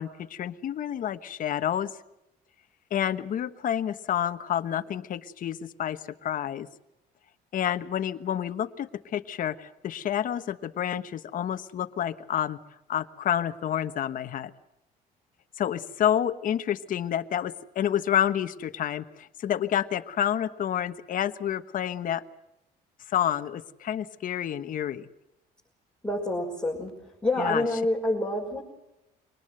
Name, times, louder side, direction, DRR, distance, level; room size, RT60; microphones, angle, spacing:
voice 1, 0.0-1.9 2.9-6.7 7.5-12.6 12.9-14.5 15.6-22.2 23.1-25.1 27.4-27.6, left 10 dB, 55° left, 9 dB, 1.3 m, -29 dB
voice 2, 26.0-28.6, left 1 dB, 5° left, -3 dB, 5.8 m, -28 dB
24.0 x 19.5 x 8.0 m, 0.87 s
cardioid pair, 110°, 17 cm